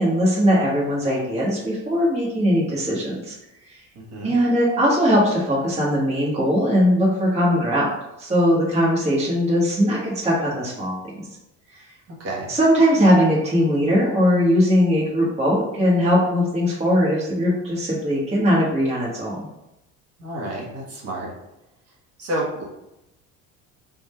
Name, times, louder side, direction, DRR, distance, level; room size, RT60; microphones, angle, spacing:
voice 1, 0.0-3.3 4.2-7.9 8.2-11.2 12.5-19.4, equal, 20° right, -7 dB, 1.3 m, -20 dB
voice 2, 12.1-12.5 20.2-21.3 22.2-22.6, right 1 dB, 50° right, -4 dB, 1.4 m, -29 dB
3.6 x 2.6 x 4.3 m, 0.88 s
cardioid pair, 125°, 32 cm